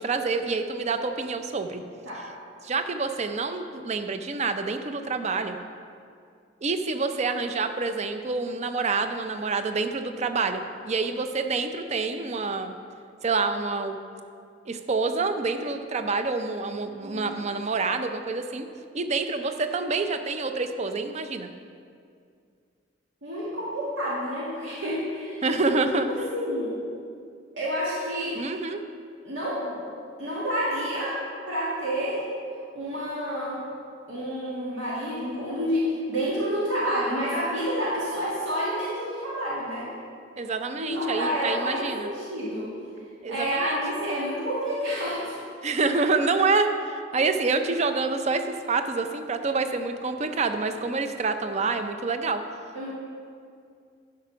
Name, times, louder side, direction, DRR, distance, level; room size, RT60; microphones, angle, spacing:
voice 1, 0.0-1.8 2.6-5.6 6.6-12.7 13.2-14.0 14.7-18.7 18.9-21.5 25.4-26.1 28.4-28.8 40.4-42.1 43.2-43.8 45.6-52.4, right 4 dB, 35° right, 8 dB, 0.5 m, -27 dB
voice 2, 16.8-17.3 23.2-25.4 26.1-26.7 27.5-28.4 29.2-29.8 30.2-31.1 31.5-32.2 32.7-33.6 34.1-39.9 40.8-42.7 43.3-45.4 52.7-52.9, equal, 90° right, -7 dB, 2.0 m, -29 dB
11.0 x 5.1 x 5.8 m, 2.3 s
head